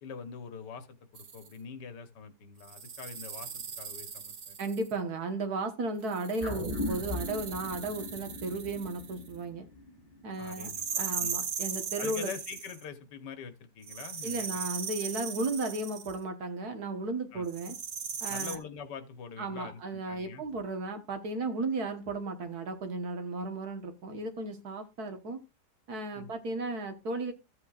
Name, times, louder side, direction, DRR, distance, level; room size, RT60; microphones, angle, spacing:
voice 1, 0.0-4.6 10.4-11.4 12.0-14.6 17.3-17.5 18.3-20.4 26.1-26.3, left 6 dB, 85° left, 1.7 m, -44 dB
sound 1, 1.1-1.5 2.6-4.9 6.1-9.3 10.4-12.8 13.8-16.2 17.5-18.6, right 6 dB, 50° right, 0.7 m, -38 dB
voice 2, 4.6-9.7 10.2-10.7 11.0-12.3 14.2-17.8 18.2-18.6 19.4-25.4 25.9-27.3, right 2 dB, 65° right, 1.8 m, -35 dB
sound 2, 6.4-11.0 11.3-11.4, left 2 dB, 30° left, 3.4 m, -39 dB
14.5 x 8.1 x 2.4 m
omnidirectional pair, 1.8 m